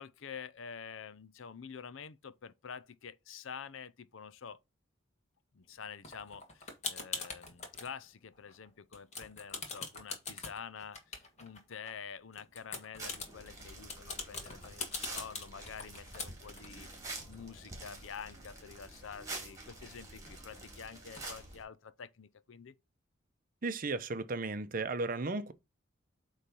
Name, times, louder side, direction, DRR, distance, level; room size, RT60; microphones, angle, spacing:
voice 1, 0.0-4.6 5.5-16.9 17.3-22.7, left 6 dB, 75° left, 0.6 m, -48 dB
sound 1, 6.0-7.9 8.3-8.7 8.9-11.9 12.3-18.5 18.8-18.9 19.1-20.6 21.2-21.3, left 4 dB, 35° left, 1.7 m, -43 dB
sound 2, 13.0-21.6, right 2 dB, 15° right, 2.9 m, -47 dB
voice 2, 23.6-25.5, right 3 dB, 45° right, 0.7 m, -35 dB
8.4 x 3.3 x 5.3 m
head